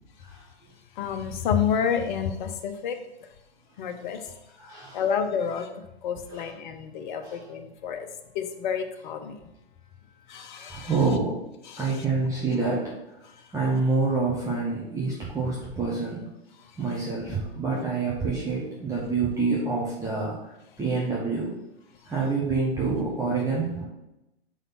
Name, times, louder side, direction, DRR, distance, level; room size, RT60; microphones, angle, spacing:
voice 1, 1.0-3.0 3.8-4.3 4.9-8.1 8.3-9.4 10.3-10.9 11.7-11.9, left 7 dB, 50° left, 7 dB, 0.9 m, -29 dB
voice 2, 4.6-5.0 6.3-6.5 7.2-7.5 10.7-11.4 11.8-13.2 13.5-16.3 16.8-21.6 22.0-23.9, right 4 dB, 10° right, -6 dB, 1.2 m, -27 dB
5.1 x 4.1 x 5.9 m, 0.90 s
hypercardioid pair, 125°, 32 cm